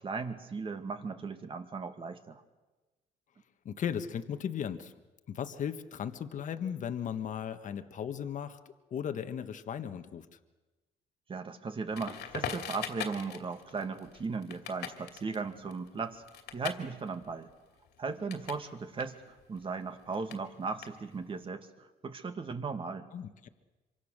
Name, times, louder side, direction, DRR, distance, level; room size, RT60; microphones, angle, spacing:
voice 1, 0.0-2.4 11.3-16.2 16.5-17.5 18.0-23.1, right 4 dB, 30° right, 7 dB, 2.1 m, -37 dB
voice 2, 3.6-4.9 5.3-8.6 8.9-10.2 23.1-23.5, left 8 dB, 50° left, 8 dB, 1.4 m, -36 dB
Crackle, 11.9-18.7 18.9-21.4, left 8 dB, 75° left, 2.7 m, -42 dB
26.0 x 24.5 x 6.6 m, 1.2 s
cardioid pair, 110°, 17 cm